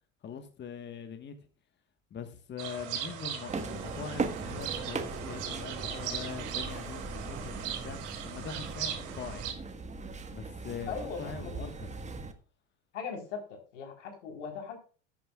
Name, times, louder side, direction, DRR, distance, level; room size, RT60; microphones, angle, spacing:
voice 1, 0.2-1.4 2.1-9.4 10.3-12.1, left 6 dB, 30° left, 1.5 m, -42 dB
sound 1, 2.6-9.5, right 9 dB, 55° right, 3.4 m, -39 dB
sound 2, 3.5-12.3, right 3 dB, 20° right, 1.5 m, -39 dB
voice 2, 10.9-11.7 12.9-14.8, left 6 dB, 80° left, 4.3 m, -39 dB
13.0 x 9.2 x 2.4 m
hypercardioid pair, 90°, 36 cm